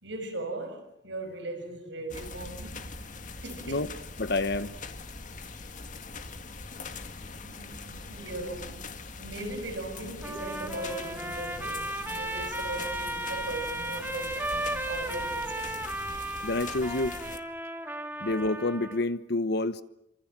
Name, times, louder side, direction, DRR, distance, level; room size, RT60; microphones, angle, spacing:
voice 1, 0.0-2.9 3.4-3.8 7.4-8.9 9.2-15.8, right 2 dB, 80° right, 6.3 m, -38 dB
sound 1, 2.1-17.4, left 3 dB, 45° left, 2.0 m, -42 dB
voice 2, 4.2-4.7 16.4-17.2 18.2-19.8, left 2 dB, 60° left, 1.1 m, -28 dB
Trumpet, 10.2-19.0, right 1 dB, 10° right, 2.7 m, -35 dB
28.5 x 26.0 x 7.5 m
head